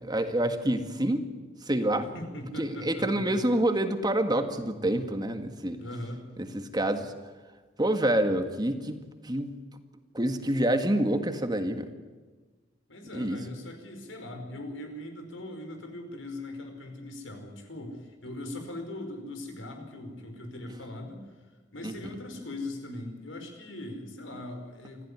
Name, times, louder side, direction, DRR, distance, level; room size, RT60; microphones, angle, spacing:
voice 1, 0.0-1.3 1.7-2.1 2.6-5.8 6.4-7.1 7.8-9.6 10.1-11.9 13.1-13.4 21.8-21.9, right 1 dB, 20° right, 7 dB, 1.8 m, -27 dB
voice 2, 2.0-3.4 5.8-6.2 12.9-21.2 21.7-25.1, left 1 dB, 90° left, 5 dB, 5.1 m, -40 dB
26.0 x 15.5 x 9.8 m, 1.4 s
head